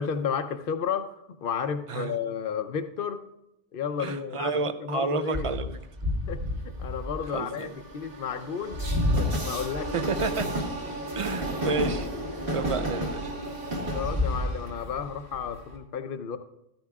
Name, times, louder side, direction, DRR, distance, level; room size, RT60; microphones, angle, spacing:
voice 1, 0.0-3.2 3.7-5.5 6.0-8.8 9.1-9.9 11.6-11.7 13.8-16.4, left 7 dB, 60° left, 0.8 m, -32 dB
voice 2, 4.0-5.8 7.3-7.7 9.9-10.5 11.2-12.1 12.5-13.3, right 4 dB, 40° right, 0.5 m, -30 dB
Train, 5.3-15.7, equal, 60° right, 1.9 m, -30 dB
13.0 x 13.0 x 2.4 m
omnidirectional pair, 1.1 m